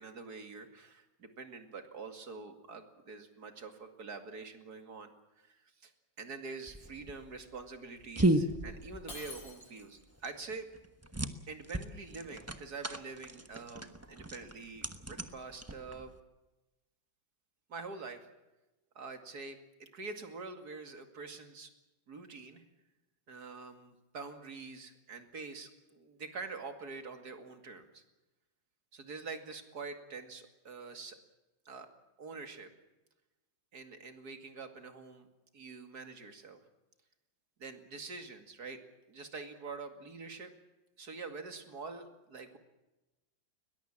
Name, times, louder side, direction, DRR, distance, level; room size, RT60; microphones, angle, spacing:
voice 1, 0.0-5.1 5.4-5.9 6.2-10.7 11.5-16.1 17.7-18.3 18.9-21.7 22.1-22.6 23.3-28.0 28.9-31.2 31.7-31.9 32.2-32.7 33.7-35.3 35.5-36.6 37.6-38.8 39.1-40.5 41.0-42.6, right 4 dB, 55° right, 7 dB, 2.7 m, -46 dB
sound 1, 6.7-16.2, right 1 dB, 10° right, 0.7 m, -35 dB
Shatter, 9.1-10.1, left 2 dB, 75° left, 7.8 m, -47 dB
21.5 x 21.0 x 7.4 m, 1.0 s
omnidirectional pair, 2.1 m